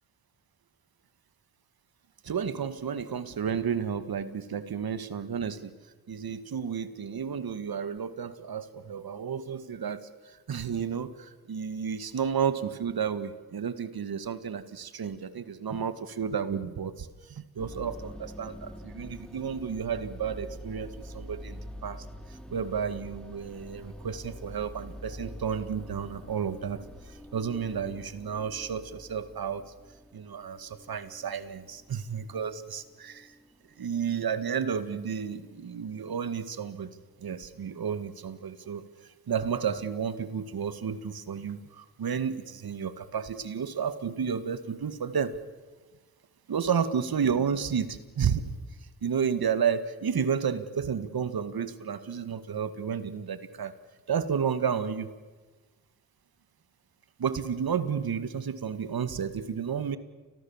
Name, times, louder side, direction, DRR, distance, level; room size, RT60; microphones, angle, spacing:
voice 1, 2.2-5.8 6.1-22.1 22.5-26.8 27.1-29.7 30.1-33.3 33.8-36.9 37.2-38.8 39.3-45.3 46.5-48.5 49.0-53.7 54.1-55.1 57.2-60.0, right 7 dB, 65° right, 12 dB, 2.0 m, -32 dB
sound 1, 17.6-35.9, equal, ahead, 3.0 m, -46 dB
29.5 x 24.0 x 7.3 m, 1.3 s
supercardioid pair, 45°, 39 cm